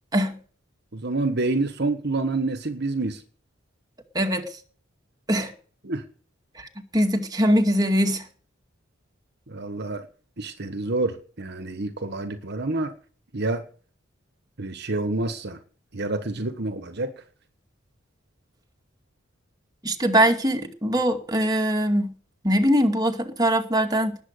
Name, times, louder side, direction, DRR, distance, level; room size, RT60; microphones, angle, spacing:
voice 1, 0.9-3.2 5.8-6.0 9.5-10.1 10.4-12.9 13.3-13.6 14.6-15.6 15.9-17.1, right 2 dB, 55° right, 1.4 m, -28 dB
voice 2, 4.1-4.5 5.3-5.5 6.6-6.7 6.9-8.2 19.8-22.1 22.4-24.2, equal, 20° right, 2.2 m, -22 dB
19.5 x 7.8 x 6.7 m
head